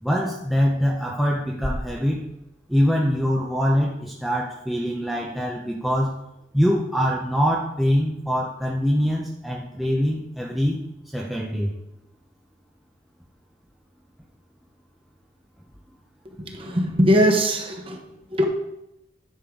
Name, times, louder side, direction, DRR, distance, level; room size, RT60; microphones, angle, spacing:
voice 1, 0.0-2.3 2.7-6.2 6.5-10.8 11.1-11.7, equal, ahead, -3 dB, 0.7 m, -23 dB
sound 1, 1.6-3.7, equal, 55° left, 2.5 m, -36 dB
voice 2, 16.4-18.4, equal, 30° right, 3 dB, 1.2 m, -21 dB
10.5 x 6.5 x 3.8 m, 0.87 s
head